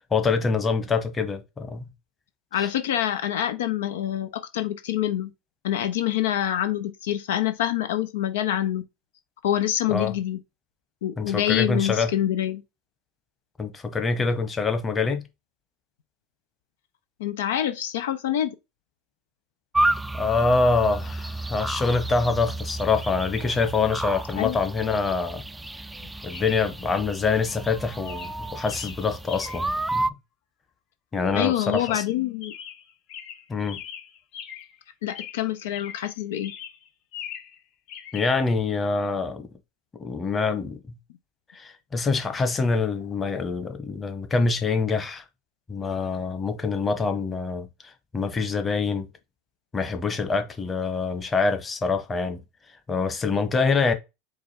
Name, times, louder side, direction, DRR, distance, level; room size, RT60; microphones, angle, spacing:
voice 1, 0.1-1.9 2.6-2.7 9.9-10.1 11.2-12.1 13.6-15.2 20.1-25.4 26.2-30.1 31.1-32.0 33.5-33.8 38.1-39.5 40.0-41.0 41.5-45.2 45.7-49.1 49.7-52.4 52.9-53.9, left 4 dB, 25° left, 1.1 m, -25 dB
voice 2, 2.5-5.3 5.6-8.8 9.4-10.4 11.0-12.6 17.2-18.5 24.4-24.6 31.3-32.5 35.0-36.5, left 12 dB, 85° left, 0.6 m, -26 dB
sound 1, 19.7-30.1, right 2 dB, 10° right, 0.3 m, -31 dB
Chirp tweet, 23.6-23.7 26.3-26.7 27.4-27.7 28.0-29.8 31.7-32.1 32.4-34.8 35.1-36.1 36.4-37.6 37.9-38.3, left 9 dB, 60° left, 1.2 m, -41 dB
4.8 x 2.3 x 4.3 m
supercardioid pair, 100°, 0 cm